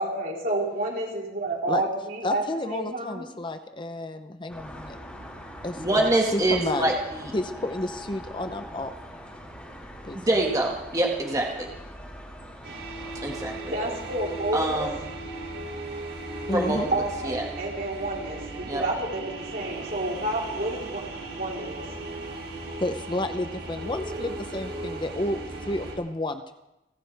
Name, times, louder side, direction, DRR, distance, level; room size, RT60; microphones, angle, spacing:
voice 1, 0.0-3.3 13.7-14.9 16.9-21.8, right 2 dB, 55° right, -2 dB, 3.9 m, -30 dB
voice 2, 2.2-5.0 5.6-6.9 7.3-8.9 10.0-10.2 16.5-16.9 22.8-26.5, left 1 dB, 25° left, 8 dB, 0.7 m, -31 dB
sound 1, 4.5-13.6, equal, 10° left, 4.4 m, -43 dB
voice 3, 5.8-6.9 7.2-7.3 10.1-11.7 13.2-13.5 14.5-14.9 16.5-16.8 17.3-17.4 18.7-18.8, right 1 dB, 20° right, 0 dB, 1.9 m, -25 dB
sound 2, 12.6-25.9, right 2 dB, 70° right, 6.8 m, -37 dB
29.5 x 12.5 x 3.5 m, 0.94 s
head